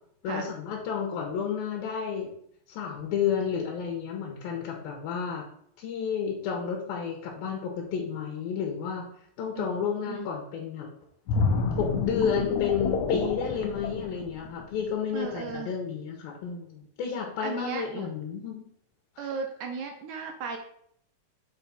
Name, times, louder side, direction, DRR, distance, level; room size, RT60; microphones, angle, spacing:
voice 1, 0.2-2.3 2.7-5.4 5.8-9.1 9.4-10.9 11.8-18.7 19.2-19.3, left 7 dB, 85° left, 0 dB, 3.0 m, -31 dB
voice 2, 9.6-10.3 15.1-15.7 17.4-18.1 19.2-20.6, right 5 dB, 75° right, 4 dB, 1.7 m, -36 dB
sound 1, 11.3-14.9 15.3-15.5, left 4 dB, 70° left, 1.9 m, -29 dB
7.4 x 5.1 x 4.2 m, 0.67 s
omnidirectional pair, 4.2 m